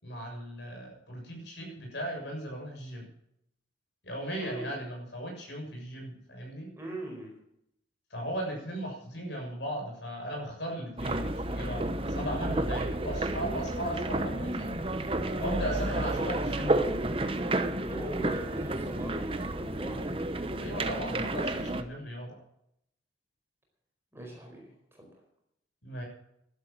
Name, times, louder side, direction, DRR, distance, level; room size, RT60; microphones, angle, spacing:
voice 1, 0.0-3.1 4.0-6.7 8.1-15.1 15.4-17.2 20.6-22.4 25.8-26.0, equal, 70° left, 1 dB, 6.9 m, -37 dB
voice 2, 4.4-4.8 6.8-7.4 17.9-20.1 24.1-25.2, right 1 dB, 15° right, 0 dB, 4.7 m, -41 dB
sound 1, 11.0-21.8, right 1 dB, 30° right, 0.9 m, -31 dB
12.0 x 12.0 x 7.6 m, 0.75 s
head